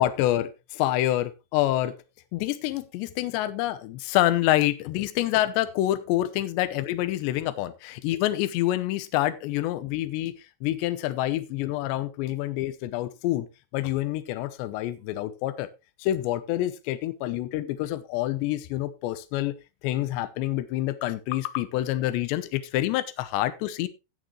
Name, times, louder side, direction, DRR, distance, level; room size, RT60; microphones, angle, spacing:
voice 1, 0.0-2.0 2.3-10.4 10.6-13.5 13.7-15.7 16.0-19.5 19.8-23.9, left 14 dB, 75° left, 12 dB, 2.9 m, -27 dB
17.5 x 6.4 x 3.1 m, 0.26 s
omnidirectional pair, 5.6 m